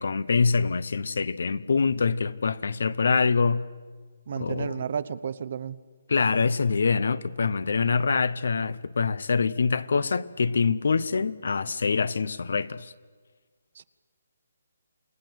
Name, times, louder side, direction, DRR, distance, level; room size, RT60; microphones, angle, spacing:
voice 1, 0.0-3.7 4.4-4.8 6.1-12.9, left 5 dB, 65° left, 0.9 m, -25 dB
voice 2, 4.3-5.8 13.7-13.8, right 7 dB, 40° right, 0.8 m, -32 dB
28.5 x 19.5 x 8.0 m
hypercardioid pair, 175°, 0 cm